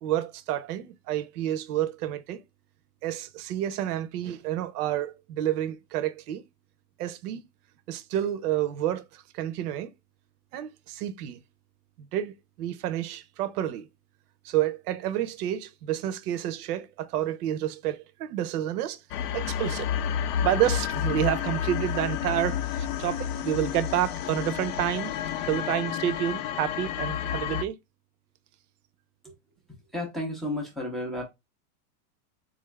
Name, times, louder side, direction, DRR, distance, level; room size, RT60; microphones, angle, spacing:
voice 1, 0.0-2.4 3.0-6.4 7.0-7.4 7.9-9.9 10.5-11.4 12.0-13.9 14.4-19.0 19.3-19.9 20.2-25.1 25.5-27.7, right 12 dB, 70° right, 0.7 m, -29 dB
sound 1, 19.1-27.6, left 9 dB, 75° left, 0.6 m, -30 dB
voice 2, 29.9-31.2, left 1 dB, ahead, 0.4 m, -32 dB
3.9 x 2.4 x 3.1 m
supercardioid pair, 140°, 47 cm